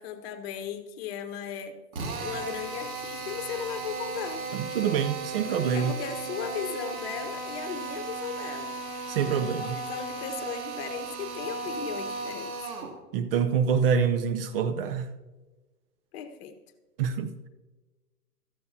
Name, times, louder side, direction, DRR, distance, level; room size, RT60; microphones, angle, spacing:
voice 1, 0.0-1.8 2.2-4.4 5.7-8.8 9.6-12.5 16.1-16.6, left 8 dB, 40° left, 1.4 m, -36 dB
Drill, 1.9-13.0, right 3 dB, 60° right, 2.6 m, -36 dB
voice 2, 4.5-5.9 9.1-9.7 13.1-15.1 17.0-17.5, right 7 dB, 35° right, 0.8 m, -26 dB
16.0 x 14.0 x 2.8 m
figure-of-eight pair, 115°, 47 cm